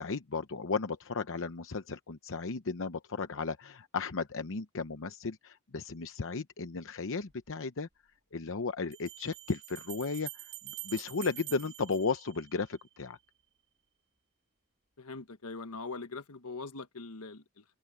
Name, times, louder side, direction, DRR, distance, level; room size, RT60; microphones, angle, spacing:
voice 1, 0.0-7.9 8.3-10.5 10.8-13.2, left 4 dB, 60° left, 0.8 m, -35 dB
Bell, 7.3-7.4 8.9-12.8, right 17 dB, 50° right, 2.4 m, -46 dB
voice 2, 15.0-17.6, left 3 dB, 80° left, 1.3 m, -42 dB
head